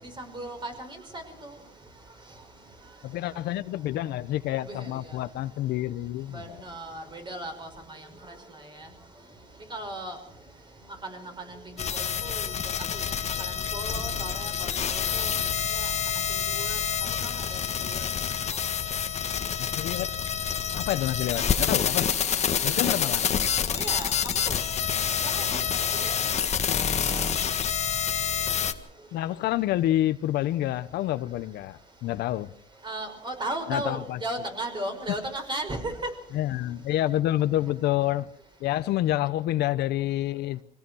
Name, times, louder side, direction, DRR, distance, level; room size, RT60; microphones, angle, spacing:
voice 1, 0.2-1.5 4.6-4.8 6.3-8.0 9.7-10.2 11.0-11.3 11.9-12.5 13.4-15.3 15.7-15.9 16.6-16.8 17.2-17.6 17.9-18.1 22.4-23.1 23.7-24.1 24.5-24.6 25.3-25.8 26.0-26.1 27.1-27.3 32.8-35.9, right 1 dB, 25° right, 5.7 m, -36 dB
voice 2, 3.0-6.6 19.6-20.1 20.7-22.2 22.6-23.4 29.1-32.5 33.7-34.2 36.3-38.3 38.6-40.6, left 14 dB, 80° left, 1.0 m, -28 dB
sound 1, 11.8-28.7, left 7 dB, 40° left, 1.5 m, -27 dB
24.0 x 17.5 x 6.3 m
cardioid pair, 110°, 17 cm